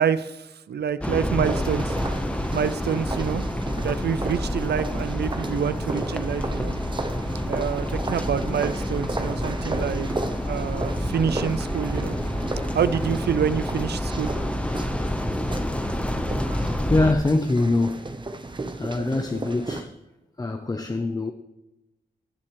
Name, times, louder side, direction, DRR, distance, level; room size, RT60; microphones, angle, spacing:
voice 1, 0.0-1.9 2.5-3.4 3.8-6.8 7.5-10.1 10.5-12.2 12.7-14.3, right 7 dB, 90° right, 0.5 m, -27 dB
sound 1, 1.0-17.1, left 1 dB, 5° left, 0.9 m, -28 dB
sound 2, 1.4-19.8, right 2 dB, 30° right, 0.9 m, -34 dB
voice 2, 16.8-18.1 18.8-19.9 20.4-21.3, left 2 dB, 20° left, 0.6 m, -24 dB
17.0 x 7.5 x 3.1 m
wide cardioid pair, 130°, 17 cm